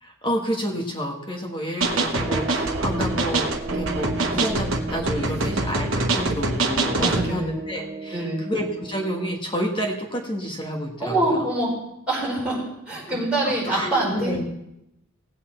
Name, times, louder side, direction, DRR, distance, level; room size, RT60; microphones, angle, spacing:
voice 1, 0.0-11.3 13.1-13.2 13.7-14.4, equal, 25° left, 1 dB, 1.3 m, -29 dB
sound 1, 1.8-7.3, right 2 dB, 70° right, 1.1 m, -25 dB
sound 2, 2.2-9.4, right 3 dB, 30° right, 0.4 m, -34 dB
voice 2, 6.9-7.5 8.1-8.4 11.0-11.7 12.1-12.6 12.9-14.4, right 2 dB, 5° right, -7 dB, 4.9 m, -24 dB
16.5 x 8.3 x 4.4 m, 0.84 s
head